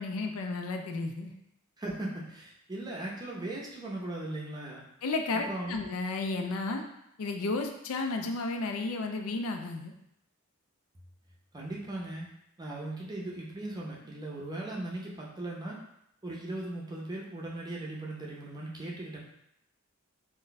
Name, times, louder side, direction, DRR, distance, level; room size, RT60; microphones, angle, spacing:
voice 1, 0.0-1.3 5.0-6.8 7.2-9.9, left 3 dB, 75° left, 4 dB, 0.4 m, -33 dB
voice 2, 1.8-4.8 5.3-5.8 11.5-12.3 12.6-15.8 16.2-19.2, right 1 dB, 20° right, -3 dB, 0.5 m, -38 dB
2.5 x 2.2 x 3.9 m, 0.78 s
head